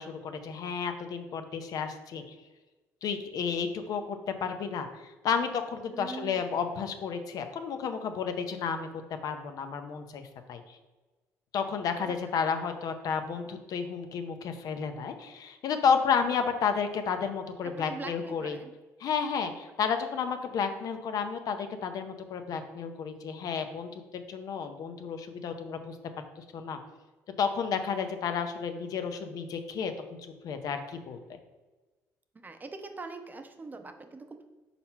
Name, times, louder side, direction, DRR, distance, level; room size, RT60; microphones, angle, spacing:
voice 1, 0.0-2.3 3.0-10.2 10.5-10.8 11.5-18.6 19.0-25.9 26.5-26.8 27.4-29.9 30.2-31.4, left 6 dB, 65° left, 7 dB, 0.7 m, -32 dB
voice 2, 5.9-6.4 12.0-12.1 12.4-12.5 17.8-18.7 32.4-34.5, right 3 dB, 25° right, 6 dB, 0.7 m, -42 dB
4.2 x 4.1 x 5.6 m, 1.2 s
supercardioid pair, 75°, 7 cm